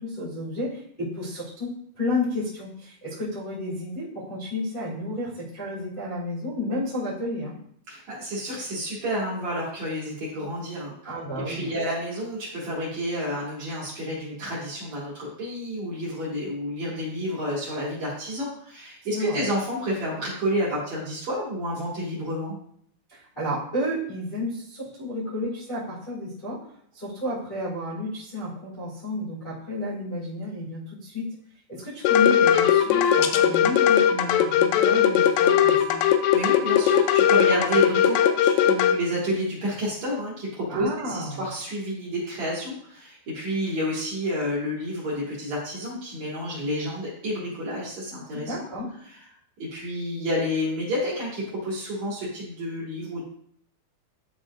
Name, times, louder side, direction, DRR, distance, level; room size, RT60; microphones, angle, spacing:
voice 1, 0.0-7.6 11.0-11.7 19.1-19.4 23.1-26.6 26.9-31.3 31.7-36.0 40.7-41.5 48.3-48.9, left 1 dB, 25° left, -10 dB, 1.1 m, -31 dB
voice 2, 7.9-10.9 11.5-22.6 36.3-48.5 49.6-53.2, equal, 50° right, -7 dB, 2.7 m, -30 dB
sound 1, 32.1-39.0, left 9 dB, 85° left, 2.7 m, -19 dB
11.0 x 3.9 x 2.4 m, 0.64 s
omnidirectional pair, 4.9 m